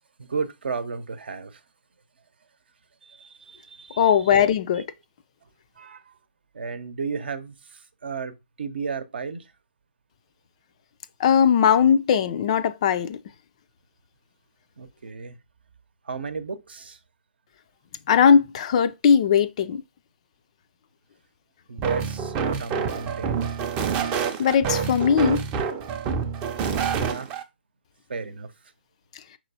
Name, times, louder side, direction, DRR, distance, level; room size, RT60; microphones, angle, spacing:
voice 1, 0.2-1.6 3.0-4.4 4.7-4.8 5.8-6.1 6.5-9.5 14.8-15.4 16.0-17.0 21.7-23.5 26.9-27.3 28.1-28.5, right 5 dB, 60° right, 0.7 m, -34 dB
voice 2, 4.0-4.8 11.2-13.2 18.1-19.8 24.4-25.4, left 7 dB, 35° left, 0.4 m, -19 dB
sound 1, 21.8-27.4, right 6 dB, 20° right, 0.5 m, -27 dB
5.9 x 3.0 x 2.7 m
figure-of-eight pair, 140°, 6 cm